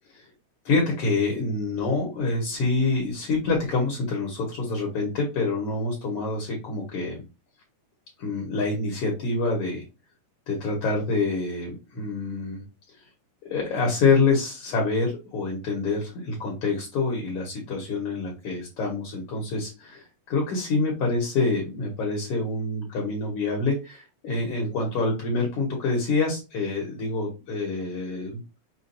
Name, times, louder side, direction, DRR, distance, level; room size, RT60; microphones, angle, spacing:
voice 1, 0.6-7.2 8.2-9.8 10.5-12.6 13.5-28.4, left 3 dB, 60° left, -2 dB, 1.6 m, -26 dB
6.2 x 2.3 x 2.6 m, 0.28 s
omnidirectional pair, 3.9 m